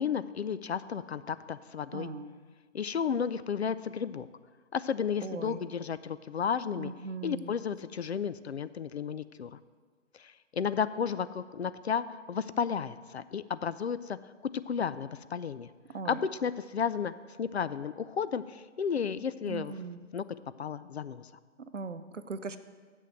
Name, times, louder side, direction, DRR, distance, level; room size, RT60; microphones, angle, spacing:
voice 1, 0.0-2.1 2.7-4.3 4.7-6.9 7.2-9.6 10.2-14.2 14.7-15.7 16.0-17.1 17.4-19.7 20.1-21.3, left 7 dB, 60° left, 15 dB, 0.5 m, -33 dB
voice 2, 1.9-2.4 5.2-5.6 6.8-7.6 15.9-16.2 19.4-20.0 21.7-22.6, right 4 dB, 80° right, 11 dB, 0.7 m, -39 dB
7.5 x 6.3 x 7.6 m, 1.5 s
figure-of-eight pair, 140°, 36 cm